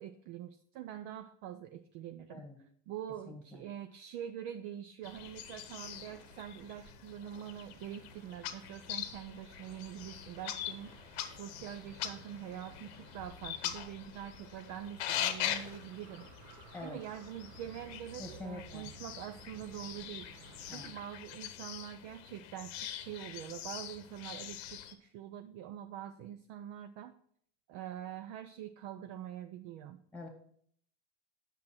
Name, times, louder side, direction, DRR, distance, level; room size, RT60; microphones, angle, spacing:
voice 1, 0.0-2.4 2.9-16.3 16.8-27.1 27.7-30.0, right 10 dB, 40° right, 9 dB, 0.4 m, -45 dB
voice 2, 3.3-3.6 16.7-17.0 18.2-18.9 20.7-20.9 30.1-30.3, left 2 dB, 5° left, 2 dB, 1.6 m, -45 dB
sound 1, 5.0-24.9, left 11 dB, 55° left, 0.9 m, -43 dB
sound 2, 5.1-20.9, right 5 dB, 55° right, 1.2 m, -57 dB
8.3 x 6.4 x 4.3 m, 0.64 s
supercardioid pair, 145°, 37 cm